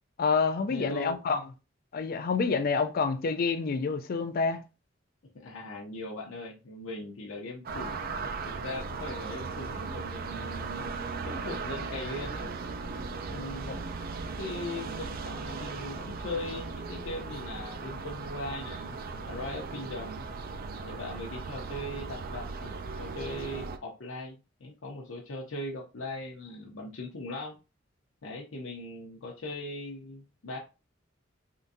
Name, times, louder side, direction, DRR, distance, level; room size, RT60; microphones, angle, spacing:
voice 1, 0.2-1.4 1.9-4.6 13.7-13.8, left 4 dB, 50° left, 0.4 m, -28 dB
voice 2, 0.7-1.2 5.3-12.5 13.2-19.0 19.2-20.3 20.8-27.6 28.2-30.6, left 2 dB, 80° left, 0.7 m, -40 dB
sound 1, 7.7-23.8, right 4 dB, 50° right, 0.4 m, -37 dB
3.7 x 2.6 x 2.6 m
head